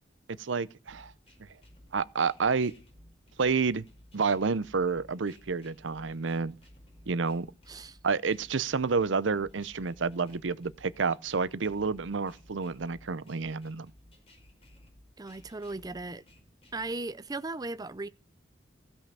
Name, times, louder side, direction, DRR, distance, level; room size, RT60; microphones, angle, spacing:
voice 1, 0.3-1.1 1.9-2.7 3.4-3.9 4.1-6.5 7.1-7.5 8.0-13.9, right 5 dB, 85° right, 0.7 m, -29 dB
sound 1, 0.9-16.9, left 1 dB, 35° left, 5.1 m, -57 dB
voice 2, 7.7-8.0 15.2-16.2 16.7-18.1, right 2 dB, 20° right, 0.5 m, -37 dB
15.5 x 5.6 x 6.8 m
head